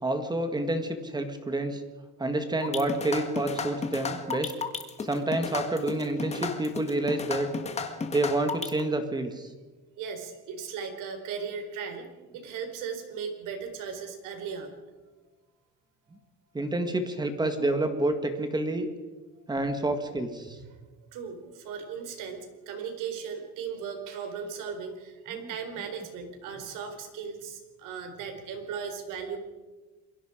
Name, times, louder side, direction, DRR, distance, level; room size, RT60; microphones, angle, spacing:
voice 1, 0.0-1.8 2.2-4.5 5.0-7.5 8.1-9.5 16.5-18.9 19.5-20.6, right 2 dB, 15° right, 7 dB, 1.8 m, -28 dB
sound 1, 2.6-8.8, left 5 dB, 20° left, 1.7 m, -33 dB
voice 2, 10.0-12.1 12.3-14.8 20.6-20.8 21.1-29.4, right 6 dB, 70° right, 6 dB, 4.4 m, -37 dB
27.5 x 22.5 x 5.1 m, 1.3 s
cardioid pair, 170°, 32 cm